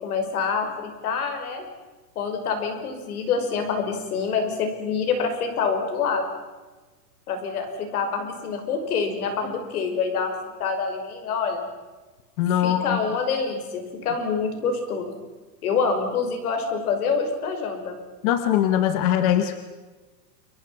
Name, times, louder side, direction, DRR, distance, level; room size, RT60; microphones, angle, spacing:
voice 1, 0.0-1.7 2.2-6.2 7.3-11.6 12.6-15.1 15.6-18.0, left 5 dB, 60° left, 6 dB, 5.8 m, -26 dB
voice 2, 12.4-13.0 18.2-19.6, left 11 dB, 25° left, 9 dB, 0.9 m, -21 dB
29.5 x 24.5 x 5.8 m, 1.3 s
supercardioid pair, 175°, 49 cm